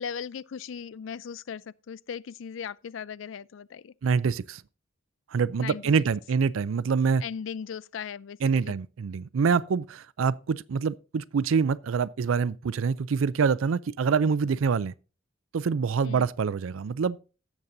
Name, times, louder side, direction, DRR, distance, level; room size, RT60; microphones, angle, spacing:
voice 1, 0.0-3.9 5.6-5.8 7.2-8.7 16.0-16.3, left 7 dB, 70° left, 0.4 m, -38 dB
voice 2, 4.0-4.6 5.3-7.2 8.4-14.9 15.5-17.2, right 5 dB, 80° right, 0.4 m, -25 dB
17.5 x 7.3 x 2.6 m
head